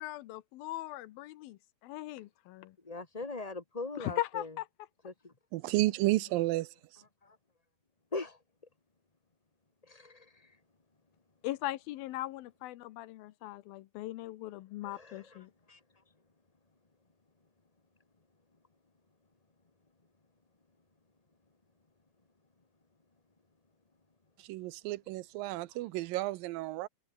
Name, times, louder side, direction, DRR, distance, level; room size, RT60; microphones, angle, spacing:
voice 1, 0.0-1.6 1.8-2.7 4.0-4.7 11.4-15.5, left 16 dB, 85° left, 2.8 m, -39 dB
voice 2, 2.9-4.5 5.0-5.1 8.1-8.4 9.9-10.2 14.8-15.4 15.7-15.8, left 3 dB, 25° left, 0.8 m, -40 dB
voice 3, 5.5-6.7 24.5-26.9, right 18 dB, 80° right, 2.4 m, -31 dB
omnidirectional pair, 4.1 m